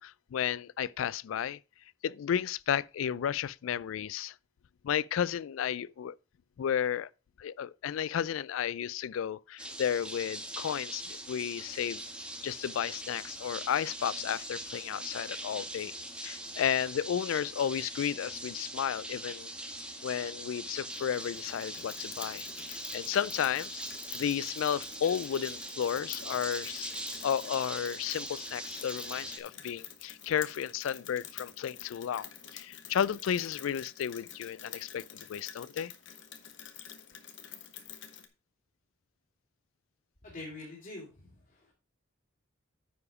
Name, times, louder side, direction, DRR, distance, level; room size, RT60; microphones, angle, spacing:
voice 1, 0.0-1.6 2.0-4.3 4.8-6.1 6.6-7.1 7.4-12.0 12.4-15.9 16.2-19.5 20.0-23.8 24.1-26.9 27.2-35.9, left 9 dB, 85° left, 0.3 m, -33 dB
sound 1, 9.6-29.4, right 1 dB, 5° right, 1.4 m, -42 dB
Rain, 20.9-38.3, left 9 dB, 65° left, 1.2 m, -48 dB
voice 2, 40.2-41.7, left 2 dB, 45° left, 3.0 m, -45 dB
9.7 x 4.9 x 4.8 m
head